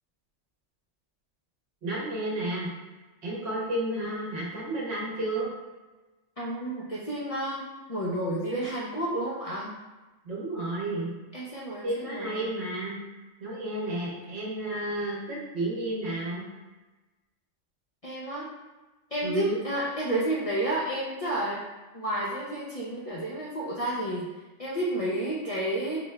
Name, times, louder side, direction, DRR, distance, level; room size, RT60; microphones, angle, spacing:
voice 1, 1.8-2.7 3.2-5.5 10.2-11.1 11.8-13.0 13.4-16.5 19.2-19.6, right 1 dB, 60° right, -4 dB, 1.1 m, -31 dB
voice 2, 6.4-9.7 11.3-12.5 18.0-18.5 19.1-21.6 21.9-24.3 24.6-26.0, right 1 dB, 55° left, -5 dB, 0.4 m, -31 dB
4.2 x 2.3 x 3.1 m, 1.2 s
omnidirectional pair, 1.3 m